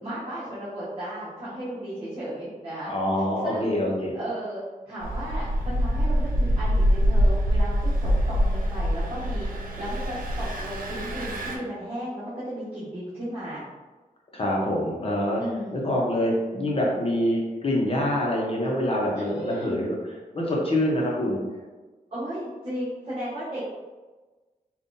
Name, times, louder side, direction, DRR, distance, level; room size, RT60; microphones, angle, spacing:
voice 1, 0.0-2.9 3.4-3.7 4.1-9.5 9.8-13.6 15.4-15.9 19.1-19.7 22.1-23.6, right 1 dB, 40° right, -11 dB, 1.5 m, -35 dB
voice 2, 2.8-4.1 14.3-15.4 15.7-20.0 20.3-21.4, left 1 dB, 40° left, -3 dB, 0.9 m, -25 dB
Engine, 5.0-11.6, equal, 75° right, 0.7 m, -24 dB
5.3 x 2.4 x 2.7 m, 1.3 s
wide cardioid pair, 110°, 15 cm